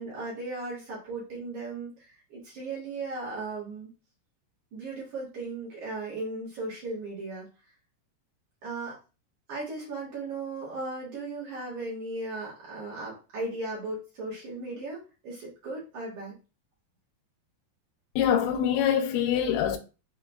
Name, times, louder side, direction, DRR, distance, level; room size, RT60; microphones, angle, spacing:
voice 1, 0.0-3.9 4.7-7.5 8.6-9.0 9.5-16.3, right 2 dB, 65° right, 2.0 m, -36 dB
voice 2, 18.2-19.8, left 9 dB, 90° left, 2.8 m, -24 dB
6.5 x 2.3 x 2.2 m
omnidirectional pair, 5.1 m